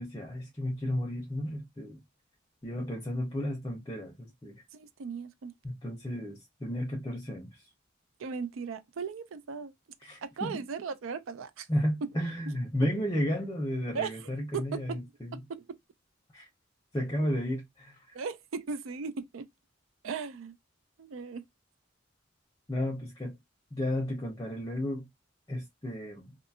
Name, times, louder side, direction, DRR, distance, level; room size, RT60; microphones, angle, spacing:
voice 1, 0.0-2.0 2.6-4.6 5.6-7.6 10.0-10.6 11.7-15.4 16.3-16.5 16.9-18.2 22.7-23.3 23.7-25.1 25.5-26.2, equal, 20° left, 0.6 m, -33 dB
voice 2, 4.7-5.5 8.2-9.7 10.2-11.7 12.0-12.1 13.9-14.1 14.5-15.0 15.3-15.8 18.1-19.5 20.0-20.6 21.0-21.4, right 5 dB, 90° right, 0.4 m, -37 dB
2.6 x 2.3 x 2.7 m
head